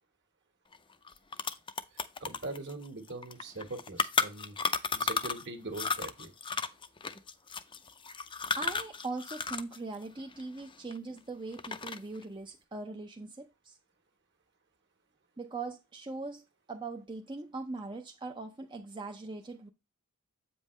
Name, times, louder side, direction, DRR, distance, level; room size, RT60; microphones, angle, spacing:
sound 1, 0.7-0.8 1.1-5.5 5.7-9.8 10.0-11.2 11.5-12.2, left 5 dB, 20° left, 0.5 m, -33 dB
voice 1, 1.9-4.6 4.9-6.3, right 2 dB, 55° right, 1.6 m, -42 dB
voice 2, 8.6-13.8 15.4-19.7, right 3 dB, 20° right, 0.5 m, -41 dB
8.2 x 5.4 x 3.2 m
head